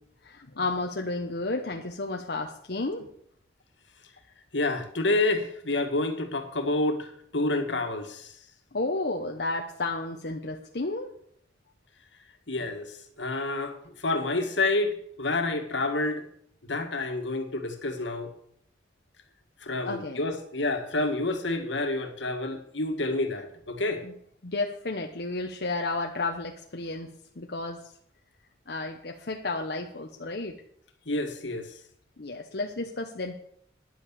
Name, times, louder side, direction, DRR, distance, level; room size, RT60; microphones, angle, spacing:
voice 1, 0.2-3.1 8.7-11.1 19.8-20.2 24.0-24.1 24.4-27.1 27.4-27.8 28.7-30.5 32.2-33.3, left 2 dB, 60° left, 2 dB, 0.9 m, -32 dB
voice 2, 4.5-7.1 7.3-8.3 12.5-13.8 14.0-16.2 16.6-18.3 19.6-24.0 31.1-31.7, left 2 dB, 80° left, 6 dB, 1.8 m, -28 dB
10.5 x 8.5 x 7.0 m, 0.67 s
head